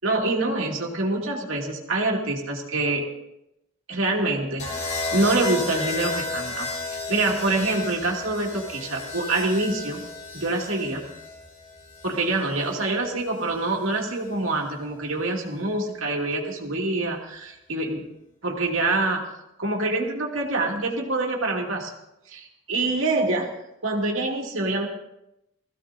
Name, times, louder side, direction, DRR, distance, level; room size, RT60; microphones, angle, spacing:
voice 1, 0.0-3.1 3.9-4.7 5.1-10.0 10.3-11.0 12.0-18.0 18.4-19.2 19.6-21.9 22.3-23.5 23.8-24.9, right 2 dB, 70° right, 0 dB, 2.6 m, -25 dB
sound 1, 4.6-12.7 13.9-14.3, left 3 dB, 35° left, 4.6 m, -33 dB
21.0 x 15.5 x 2.7 m, 0.86 s
head